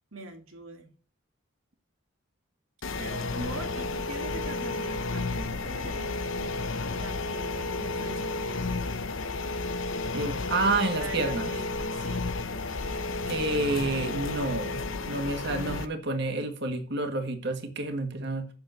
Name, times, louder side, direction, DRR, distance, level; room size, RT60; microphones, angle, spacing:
voice 1, 0.1-0.9 3.0-6.5 6.9-9.2 11.0-12.3 15.3-15.7, right 2 dB, 80° right, 4 dB, 2.4 m, -43 dB
sound 1, 2.8-15.9, left 3 dB, 70° left, 1.0 m, -32 dB
voice 2, 10.1-11.5 13.3-18.5, right 2 dB, 55° right, 6 dB, 1.8 m, -29 dB
8.1 x 6.9 x 7.9 m, 0.41 s
head